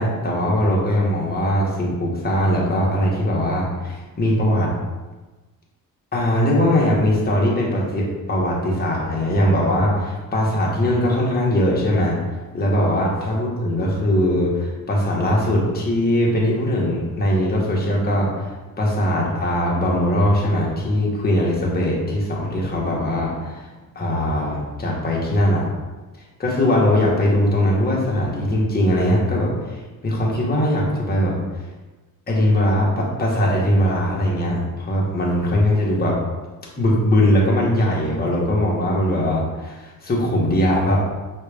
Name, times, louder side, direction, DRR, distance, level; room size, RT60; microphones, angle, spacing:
voice 1, 0.0-4.7 6.1-12.2 12.5-18.4 18.8-23.7 23.9-25.6 26.4-31.4 32.3-36.1 36.8-41.0, left 1 dB, 25° left, -4 dB, 1.1 m, -20 dB
5.6 x 2.4 x 3.4 m, 1.2 s
cardioid pair, 120°, 35 cm